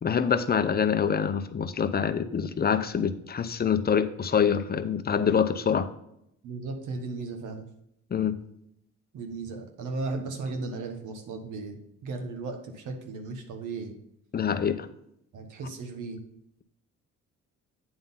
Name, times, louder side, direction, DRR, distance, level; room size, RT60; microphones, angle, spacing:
voice 1, 0.0-5.9 8.1-8.4 14.3-14.9, left 7 dB, 30° left, 10 dB, 0.7 m, -25 dB
voice 2, 6.4-7.7 9.1-11.8 12.0-13.9 15.3-16.2, right 3 dB, 80° right, 5 dB, 1.4 m, -35 dB
8.8 x 3.8 x 5.6 m, 0.77 s
cardioid pair, 90°, 30 cm